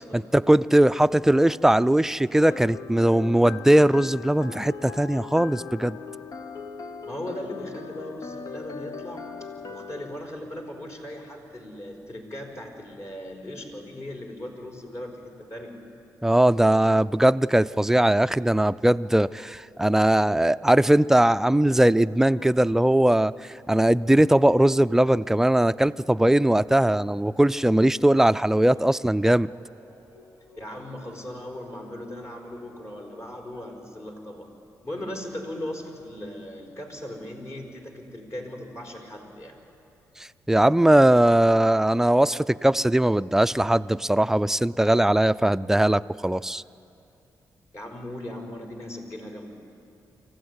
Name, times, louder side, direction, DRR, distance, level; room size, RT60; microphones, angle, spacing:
voice 1, 0.1-6.0 16.2-23.3 23.7-29.5 40.5-46.6, right 1 dB, 5° right, 14 dB, 0.4 m, -20 dB
sound 1, 2.5-10.1, left 5 dB, 65° left, 1.0 m, -39 dB
voice 2, 7.0-9.3 9.7-15.7 30.6-34.5 34.8-39.6 47.7-49.6, left 1 dB, 45° left, 1 dB, 4.8 m, -38 dB
sound 2, 22.3-24.2 24.4-34.0, left 1 dB, 85° left, 6.1 m, -55 dB
25.0 x 15.5 x 9.7 m, 2.7 s
cardioid pair, 70°, 7 cm